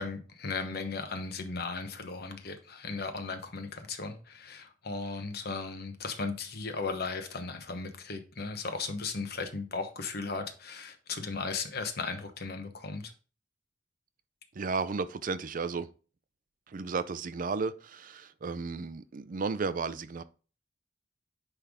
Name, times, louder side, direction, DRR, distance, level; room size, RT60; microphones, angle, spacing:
voice 1, 0.0-13.1, left 4 dB, 60° left, 1.0 m, -36 dB
voice 2, 14.5-15.9 16.7-20.2, right 4 dB, 50° right, 0.5 m, -33 dB
9.8 x 3.4 x 3.6 m
head